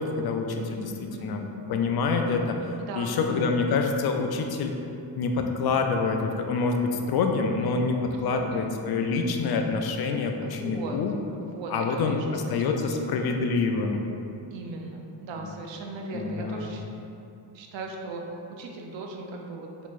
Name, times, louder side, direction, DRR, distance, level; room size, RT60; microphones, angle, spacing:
voice 1, 0.0-0.9 1.2-1.4 1.7-2.6 3.0-4.8 5.2-11.1 11.7-14.0 16.1-16.8, left 4 dB, 55° left, 4 dB, 0.5 m, -26 dB
voice 2, 0.6-1.5 2.8-3.5 8.1-8.8 10.4-11.0 11.4-12.3 12.6-13.3 14.5-16.8 17.5-18.2 18.5-19.7, right 3 dB, 65° right, 1 dB, 0.6 m, -38 dB
4.3 x 3.0 x 2.5 m, 2.7 s
supercardioid pair, 55°, 47 cm